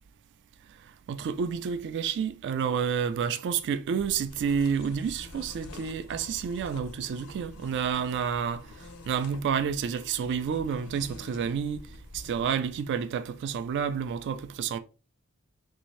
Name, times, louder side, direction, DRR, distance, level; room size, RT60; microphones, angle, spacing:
voice 1, 1.1-8.7 9.1-11.9 12.1-14.8, right 7 dB, 55° right, 0.3 m, -29 dB
sound 1, 3.9-13.1, left 2 dB, 90° left, 0.5 m, -47 dB
3.4 x 2.6 x 3.1 m
head